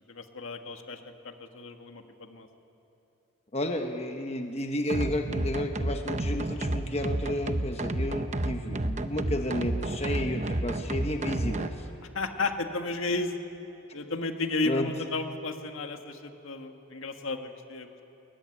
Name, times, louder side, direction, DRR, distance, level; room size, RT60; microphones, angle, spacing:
voice 1, 0.1-2.5 12.1-13.3 13.9-18.0, left 3 dB, 75° left, 5 dB, 1.8 m, -33 dB
voice 2, 3.5-11.9 14.6-14.9, left 1 dB, 30° left, 5 dB, 1.2 m, -32 dB
sound 1, 4.9-11.7, right 1 dB, 35° right, 0.9 m, -31 dB
23.0 x 20.5 x 9.9 m, 2.8 s
head